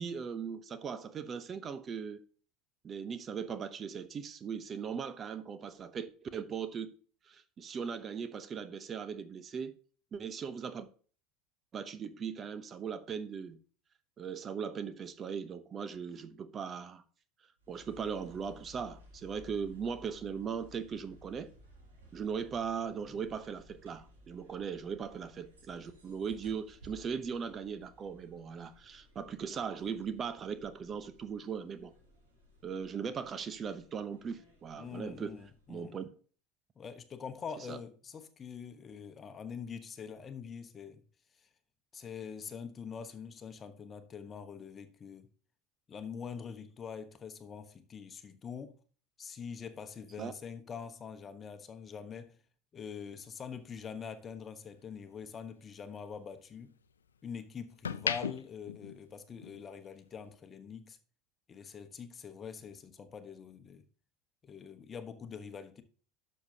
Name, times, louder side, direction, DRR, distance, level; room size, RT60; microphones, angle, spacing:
voice 1, 0.0-2.2 2.8-6.9 7.3-9.7 10.1-10.9 11.7-13.6 14.2-17.0 17.7-21.5 22.1-31.9 32.6-35.3 35.7-36.1 37.7-37.8 50.2-50.3, right 6 dB, 35° right, 0.8 m, -39 dB
sound 1, 17.6-36.0, equal, 85° right, 3.4 m, -59 dB
voice 2, 34.7-36.0 36.8-41.0 41.4-41.5 41.9-45.3 45.9-48.8 49.2-52.4 52.7-56.7 57.2-61.0 61.5-63.8 64.4-65.8, left 6 dB, 30° left, 1.1 m, -44 dB
sound 2, 53.0-55.3 55.7-57.2 57.6-59.7 60.0-60.3, left 7 dB, 85° left, 0.4 m, -39 dB
11.5 x 6.6 x 2.8 m
hypercardioid pair, 80°, 0 cm